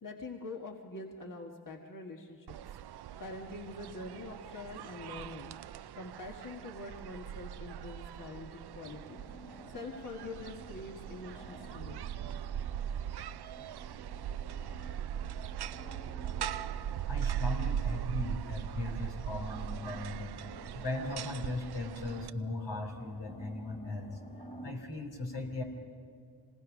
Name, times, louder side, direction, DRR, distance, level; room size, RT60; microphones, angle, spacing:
voice 1, 0.0-2.6 3.2-5.5 6.0-9.2 9.7-12.0, left 2 dB, 50° left, 2 dB, 1.7 m, -44 dB
sound 1, 2.5-22.3, right 9 dB, 65° right, 0.5 m, -40 dB
sound 2, 8.8-24.7, equal, 20° left, 2.5 m, -53 dB
voice 2, 17.1-20.5 20.7-24.2 24.6-25.6, left 2 dB, 85° left, 1 dB, 3.0 m, -38 dB
26.0 x 19.5 x 5.2 m, 2.2 s
cardioid pair, 45°, 42 cm